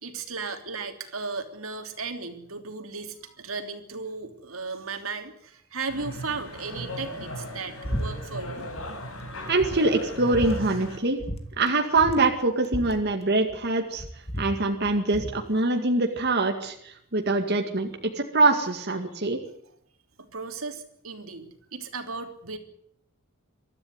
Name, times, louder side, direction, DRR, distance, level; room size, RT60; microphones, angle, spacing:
voice 1, 0.0-9.5 10.6-10.8 19.1-19.3 20.2-21.4 21.7-22.6, right 4 dB, 80° right, 6 dB, 3.1 m, -36 dB
sound 1, 5.9-11.0, equal, 75° left, 7.2 m, -37 dB
sound 2, 7.8-8.1 8.3-8.9 9.3-9.4 9.6-10.6 11.2-11.4 11.7-11.8 12.0-13.6 14.0-15.4, equal, 30° left, 2.2 m, -33 dB
voice 2, 9.5-11.2 11.6-14.0 14.4-17.9 18.2-19.4, right 2 dB, 50° right, 3 dB, 2.1 m, -24 dB
24.0 x 13.5 x 9.6 m, 0.70 s
head